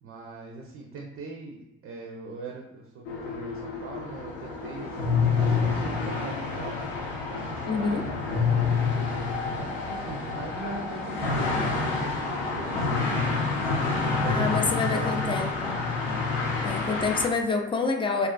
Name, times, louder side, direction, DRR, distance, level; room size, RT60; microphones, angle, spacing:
voice 1, 0.0-6.8 7.3-15.4, right 3 dB, 45° right, 0 dB, 0.5 m, -41 dB
sound 1, 3.1-17.3, left 4 dB, 80° left, 0.6 m, -28 dB
voice 2, 7.7-8.0 14.3-15.8 16.6-18.3, left 4 dB, 20° left, 3 dB, 0.3 m, -27 dB
2.4 x 2.3 x 2.2 m, 0.92 s
hypercardioid pair, 60°, 30 cm